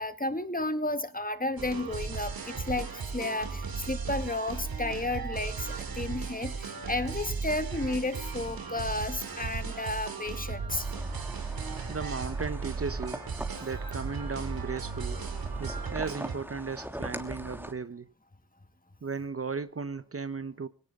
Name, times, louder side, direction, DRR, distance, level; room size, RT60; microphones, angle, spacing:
voice 1, 0.0-10.9, left 2 dB, 25° left, 2.1 m, -32 dB
sound 1, 1.6-16.4, right 5 dB, 85° right, 2.8 m, -36 dB
sound 2, 10.7-17.7, equal, 5° right, 3.0 m, -42 dB
voice 2, 11.9-13.3 13.6-15.3 15.6-18.1 19.0-20.7, right 5 dB, 40° right, 0.9 m, -36 dB
18.5 x 18.0 x 3.7 m
cardioid pair, 40°, 35 cm